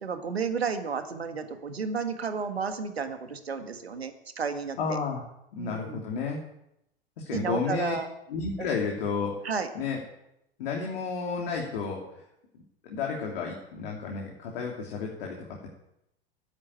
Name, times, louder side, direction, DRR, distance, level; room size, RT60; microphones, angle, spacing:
voice 1, 0.0-5.0 5.6-6.0 7.3-8.1 8.6-8.7 9.4-9.7, right 5 dB, 80° right, 8 dB, 1.7 m, -32 dB
voice 2, 4.8-5.2 5.5-6.4 7.2-7.9 8.3-9.3 9.7-10.0 10.6-12.2 12.8-15.7, left 5 dB, 60° left, -1 dB, 3.1 m, -32 dB
10.5 x 9.9 x 8.8 m, 0.82 s
figure-of-eight pair, 90°, 31 cm